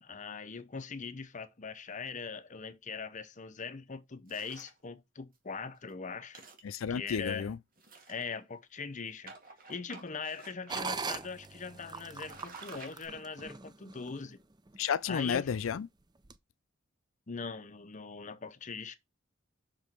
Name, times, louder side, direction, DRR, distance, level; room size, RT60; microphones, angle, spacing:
voice 1, 0.0-6.4 6.9-7.5 8.1-9.3 9.7-14.4 15.1-15.4 17.3-19.0, left 5 dB, 40° left, 0.7 m, -41 dB
sound 1, 4.3-4.8 5.3-5.4 5.8-5.9 6.2-7.1 7.8-8.6 9.3-10.8 11.1-11.2 11.7-11.9 12.1-13.1, right 4 dB, 45° right, 2.0 m, -52 dB
voice 2, 6.6-7.6 14.8-15.9, left 7 dB, 80° left, 0.4 m, -32 dB
sound 2, 10.7-14.1 14.7-14.8 15.3-15.7 16.2-16.3, right 4 dB, 20° right, 0.5 m, -40 dB
6.0 x 5.1 x 4.5 m
head